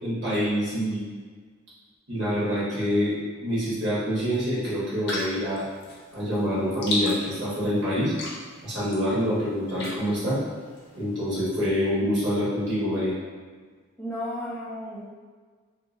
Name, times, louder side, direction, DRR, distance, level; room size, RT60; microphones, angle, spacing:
voice 1, 0.0-1.1 2.1-3.1 3.4-5.6 6.1-8.1 8.6-10.4 10.9-13.2, equal, 55° right, -9 dB, 1.2 m, -26 dB
sound 1, 5.1-11.4, left 1 dB, 55° left, 0.6 m, -36 dB
voice 2, 14.0-15.0, equal, 5° left, -8 dB, 0.4 m, -33 dB
2.8 x 2.6 x 2.5 m, 1.5 s
head